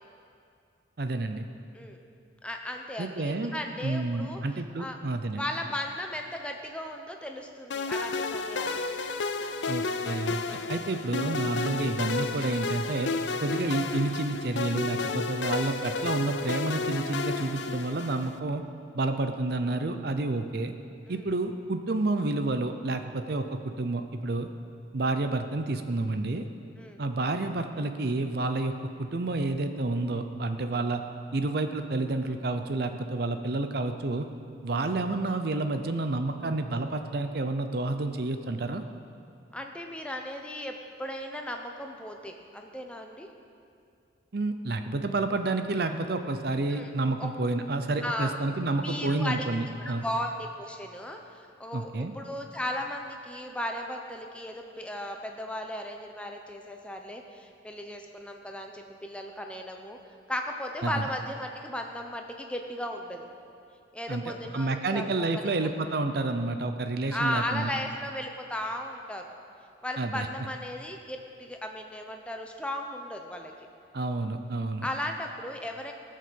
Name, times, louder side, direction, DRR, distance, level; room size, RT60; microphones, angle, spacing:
voice 1, 1.0-1.4 3.0-3.5 3.8-5.4 9.7-10.4 10.7-13.1 13.4-18.6 18.9-20.7 21.1-24.5 24.9-26.4 27.0-31.0 31.3-34.3 34.6-38.8 44.3-50.0 51.7-52.1 60.8-61.0 64.1-67.7 70.0-70.3 73.9-74.9, right 2 dB, 55° right, 7 dB, 0.6 m, -29 dB
voice 2, 2.4-5.0 5.4-8.8 21.1-21.3 26.8-27.0 30.7-30.8 35.0-35.1 39.5-43.3 46.7-46.9 47.2-47.3 48.0-48.4 48.8-60.0 60.3-63.3 63.9-65.5 67.1-69.2 69.8-73.5 74.8-75.9, left 1 dB, 5° left, 3 dB, 0.8 m, -36 dB
sound 1, 7.7-18.4, left 4 dB, 70° left, 0.6 m, -32 dB
18.0 x 6.5 x 7.0 m, 2.5 s
head